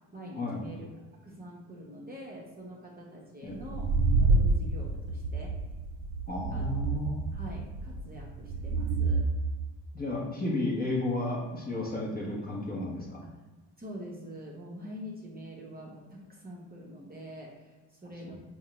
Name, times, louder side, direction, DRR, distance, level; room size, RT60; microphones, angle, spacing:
voice 1, 0.1-0.9 1.2-5.5 6.5-6.8 7.3-9.3 12.2-12.4 13.8-18.3, equal, 20° right, -3 dB, 0.8 m, -45 dB
sound 1, 3.6-9.2, right 3 dB, 65° right, 0.5 m, -28 dB
voice 2, 6.3-7.2 9.9-13.2 18.3-18.4, left 2 dB, 20° left, -3 dB, 0.8 m, -32 dB
3.6 x 2.2 x 3.0 m, 1.2 s
supercardioid pair, 70°, 46 cm